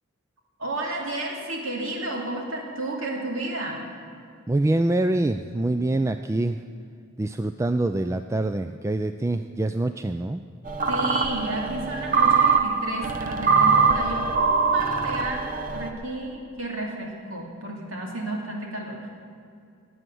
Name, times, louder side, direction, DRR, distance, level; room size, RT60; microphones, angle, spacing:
voice 1, 0.6-3.8 10.9-19.1, right 2 dB, 90° right, 0 dB, 2.6 m, -32 dB
voice 2, 4.5-6.6 7.2-10.4, right 2 dB, 15° right, 9 dB, 0.3 m, -25 dB
sound 1, 10.7-15.9, right 5 dB, 40° right, 0.9 m, -22 dB
21.0 x 7.9 x 7.7 m, 2.4 s
head